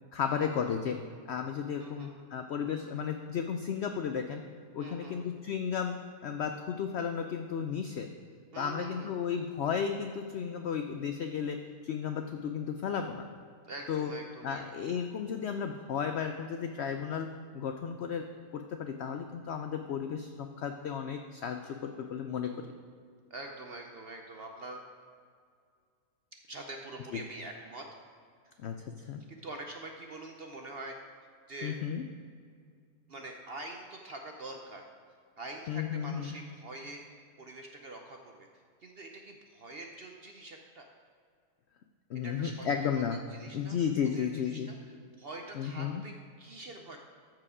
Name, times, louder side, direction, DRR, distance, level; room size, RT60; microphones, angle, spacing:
voice 1, 0.1-1.0 1.3-4.4 4.7-6.0 6.2-8.1 8.6-11.6 11.8-13.3 13.9-14.1 14.4-17.3 17.5-18.3 18.5-22.5 28.6-29.2 31.6-32.0 35.7-36.4 42.1-43.2 43.5-44.7 45.6-46.0, left 7 dB, 80° left, 6 dB, 0.6 m, -34 dB
voice 2, 1.8-2.5 4.8-5.5 8.5-9.2 13.6-14.9 23.3-24.8 26.5-27.9 29.3-31.0 31.5-31.8 33.1-34.8 35.4-38.5 38.8-40.9 42.2-43.0 43.3-43.8 44.1-47.0, right 2 dB, 60° right, 3 dB, 0.6 m, -45 dB
13.5 x 4.8 x 4.9 m, 2.1 s
omnidirectional pair, 1.7 m